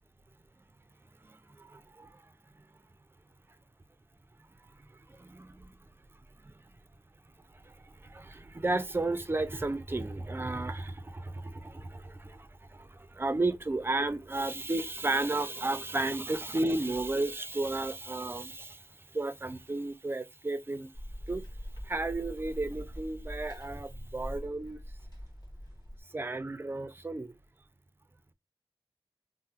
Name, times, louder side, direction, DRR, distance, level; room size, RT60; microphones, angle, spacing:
voice 1, 1.7-2.1 5.1-5.7 8.1-12.5 12.8-18.8 19.1-20.9 21.3-21.4 21.9-24.8 26.1-27.3, right 2 dB, 25° right, 0.4 m, -33 dB
sound 1, 20.9-26.0, equal, 45° left, 1.5 m, -43 dB
3.4 x 2.0 x 2.8 m
wide cardioid pair, 60°, 9 cm